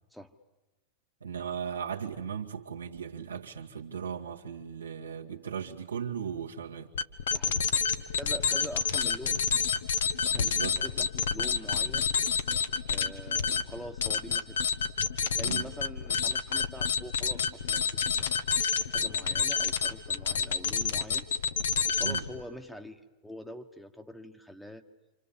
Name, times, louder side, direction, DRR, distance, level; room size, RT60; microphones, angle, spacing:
voice 1, 1.2-6.9 10.3-10.8 15.4-15.7 22.0-22.2, right 7 dB, 75° right, 1 dB, 2.2 m, -37 dB
sound 1, 6.9-22.4, left 6 dB, 65° left, 1.3 m, -29 dB
voice 2, 7.3-7.6 8.2-9.4 10.2-12.1 12.9-14.6 15.4-18.3 18.9-21.3 21.9-24.8, equal, ahead, 6 dB, 1.5 m, -44 dB
28.5 x 27.0 x 7.3 m, 1.1 s
figure-of-eight pair, 90°, 0 cm